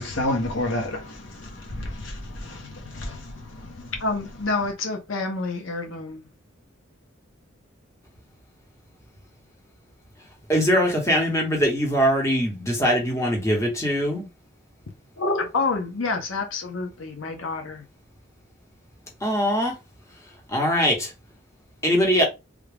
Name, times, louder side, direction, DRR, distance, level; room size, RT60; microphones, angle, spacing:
voice 1, 0.0-3.9, left 1 dB, 65° left, 1.1 m, -30 dB
voice 2, 4.0-6.2 15.2-17.9, left 3 dB, 85° left, 0.7 m, -28 dB
voice 3, 10.5-14.3 19.2-19.7 20.5-21.1 21.8-22.2, equal, 15° left, 1.0 m, -22 dB
3.5 x 2.3 x 3.4 m
head